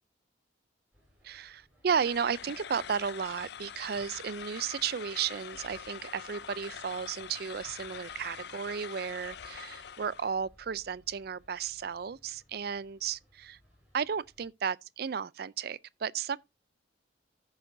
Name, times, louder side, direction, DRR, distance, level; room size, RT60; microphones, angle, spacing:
sound 1, 0.9-14.5, equal, 5° right, 4.7 m, -64 dB
voice 1, 1.2-13.6 13.9-16.4, right 7 dB, 50° right, 0.4 m, -34 dB
sound 2, 1.9-10.3, left 8 dB, 60° left, 0.5 m, -45 dB
14.5 x 6.4 x 2.6 m
head